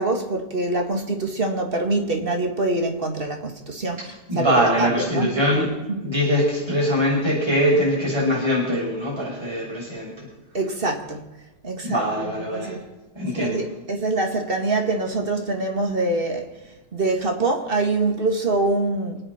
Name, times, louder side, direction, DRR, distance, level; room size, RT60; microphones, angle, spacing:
voice 1, 0.0-5.3 5.9-6.0 10.5-11.2 11.6-12.8 13.3-16.5 16.9-19.2, right 2 dB, 30° right, 2.1 m, -25 dB
voice 2, 4.3-5.7 6.0-10.3 11.8-12.7 13.2-13.7, equal, 15° right, 7.4 m, -22 dB
28.5 x 10.0 x 4.4 m
omnidirectional pair, 2.0 m